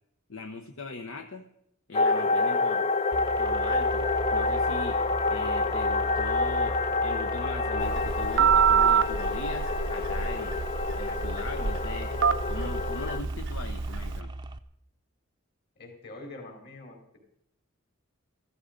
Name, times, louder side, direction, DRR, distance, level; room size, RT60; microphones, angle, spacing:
voice 1, 0.3-1.5 1.9-2.9 3.4-4.0 4.3-5.0 5.3-6.8 7.0-10.6 11.0-12.1 12.5-14.3, left 3 dB, 75° left, 7 dB, 0.9 m, -40 dB
sound 1, 1.9-13.2, left 3 dB, 30° left, 0.5 m, -28 dB
sound 2, 3.1-14.6, right 2 dB, 20° right, 0.6 m, -38 dB
Telephone, 7.8-14.2, right 7 dB, 60° right, 0.6 m, -27 dB
voice 2, 15.8-17.2, left 2 dB, 55° left, 2 dB, 4.3 m, -45 dB
14.5 x 14.0 x 5.2 m, 0.77 s
head